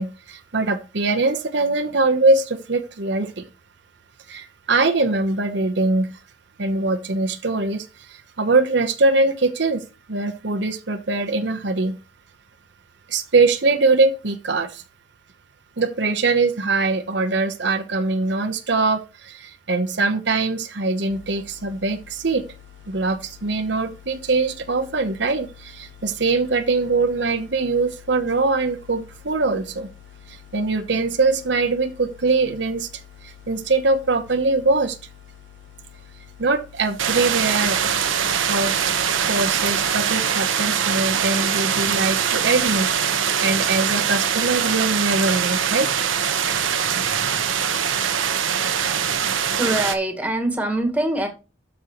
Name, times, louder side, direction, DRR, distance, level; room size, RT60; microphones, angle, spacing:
voice 1, 0.0-3.5 4.3-6.1 6.6-9.8 10.1-11.9 13.1-14.8 15.8-22.4 22.9-29.9 30.3-32.9 33.2-35.0 36.4-37.9 38.5-38.7 39.3-46.1, right 3 dB, 60° right, 7 dB, 0.9 m, -22 dB
sound 1, 21.1-39.9, left 10 dB, 70° left, 1.4 m, -47 dB
sound 2, 37.0-49.9, right 7 dB, 80° right, 1.1 m, -22 dB
voice 2, 49.2-51.3, right 1 dB, 5° right, 5 dB, 1.6 m, -24 dB
13.0 x 5.4 x 3.0 m, 0.30 s
head